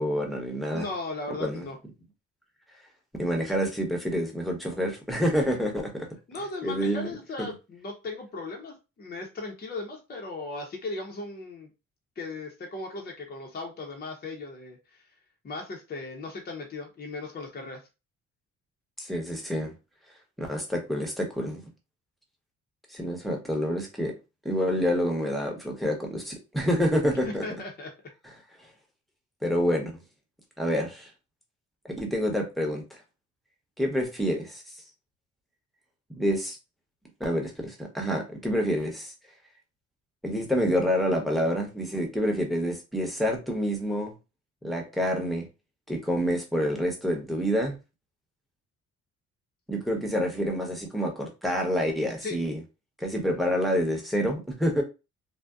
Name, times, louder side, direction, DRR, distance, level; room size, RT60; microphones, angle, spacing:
voice 1, 0.0-0.9 1.4-1.7 3.2-6.1 6.6-7.1 7.4-7.5 19.0-19.7 20.4-21.6 22.9-24.1 24.4-27.4 29.4-29.9 30.6-31.1 31.9-32.8 33.8-34.6 36.1-36.6 37.2-39.1 40.2-44.1 44.6-45.5 45.9-47.8 49.7-52.6 53.0-54.8, equal, ahead, 0.8 m, -27 dB
voice 2, 0.7-1.8 6.3-11.7 12.2-15.0 15.4-17.8 27.2-27.9 52.2-52.4, left 3 dB, 30° left, 0.6 m, -37 dB
2.6 x 2.0 x 2.3 m
cardioid pair, 90°, 30 cm